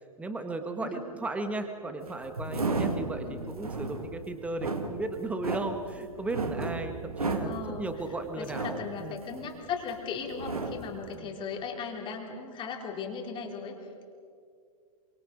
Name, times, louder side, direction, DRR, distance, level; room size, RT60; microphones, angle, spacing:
voice 1, 0.2-9.2 11.1-11.3, right 2 dB, 5° right, 6 dB, 1.5 m, -36 dB
sound 1, 2.0-9.9 10.2-11.0, right 3 dB, 80° right, 2.0 m, -34 dB
voice 2, 7.4-7.9 8.4-14.0, left 5 dB, 25° left, 1 dB, 3.3 m, -37 dB
26.5 x 25.0 x 5.2 m, 2.2 s
figure-of-eight pair, 105°, 19 cm